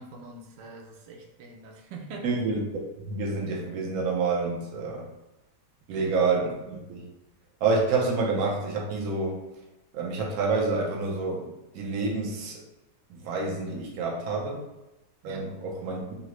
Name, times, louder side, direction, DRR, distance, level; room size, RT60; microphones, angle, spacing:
voice 1, 0.0-2.3 5.9-6.2 15.2-15.4, right 3 dB, 85° right, 1 dB, 1.3 m, -44 dB
voice 2, 2.2-2.6 3.0-5.1 5.9-7.1 7.6-9.4 9.9-12.6 13.2-14.6 15.2-16.0, right 4 dB, 65° right, -1 dB, 1.1 m, -28 dB
3.8 x 2.0 x 3.0 m, 1.0 s
omnidirectional pair, 1.9 m